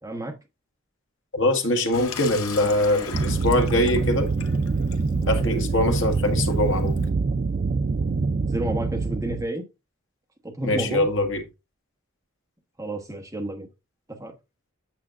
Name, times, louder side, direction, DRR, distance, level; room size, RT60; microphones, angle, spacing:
voice 1, 0.0-0.4 2.6-3.1 5.4-5.7 8.4-9.6 10.4-11.1 12.8-13.7 14.1-14.3, right 1 dB, 15° right, 1.2 m, -31 dB
voice 2, 1.3-4.3 5.3-7.0 10.6-11.4, left 1 dB, 60° left, 1.5 m, -23 dB
Water tap faucet / Sink (filling or washing), 1.9-7.1, left 5 dB, 85° left, 0.9 m, -39 dB
sound 1, 3.1-9.4, right 4 dB, 40° right, 0.3 m, -25 dB
8.6 x 6.8 x 2.5 m
head